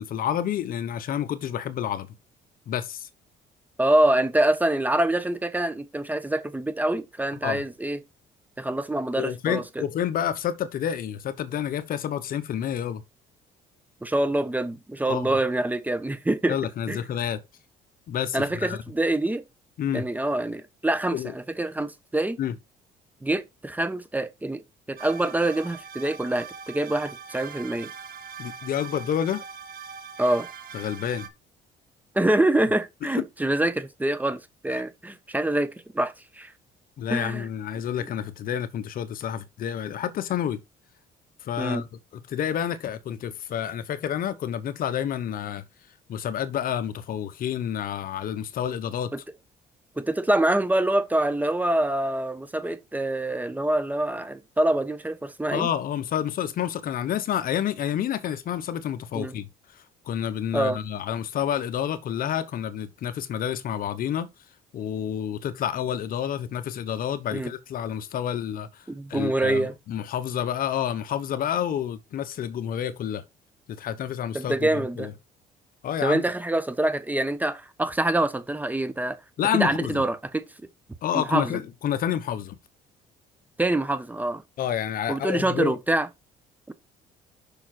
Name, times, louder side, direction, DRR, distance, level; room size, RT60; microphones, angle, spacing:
voice 1, 0.0-2.1 2.7-3.1 7.4-7.6 9.2-13.0 15.1-15.4 16.5-17.4 18.1-18.8 19.8-20.0 21.1-21.3 22.4-22.5 28.4-29.4 30.7-31.3 33.2-33.3 34.7-34.8 37.0-40.6 41.4-41.9 42.3-45.6 46.1-49.1 55.5-64.3 64.7-68.8 69.1-73.2 73.7-75.1 75.8-76.2 79.4-80.0 81.0-82.6 84.6-85.8, left 9 dB, 60° left, 1.0 m, -29 dB
voice 2, 3.8-8.0 8.6-9.8 14.0-16.6 16.9-17.0 18.3-19.4 19.9-22.4 23.2-24.6 24.9-27.9 30.2-30.5 32.1-36.5 37.1-37.5 41.6-41.8 49.1-49.2 50.0-55.7 59.1-59.3 60.5-60.8 67.3-67.5 68.9-69.7 74.3-75.1 76.0-79.2 79.5-80.4 81.1-81.6 83.6-84.4 85.1-86.1 86.7-86.8, right 1 dB, 10° right, 1.1 m, -25 dB
sound 1, 25.0-31.3, right 6 dB, 60° right, 1.5 m, -41 dB
6.9 x 6.0 x 4.4 m
cardioid pair, 110°, 17 cm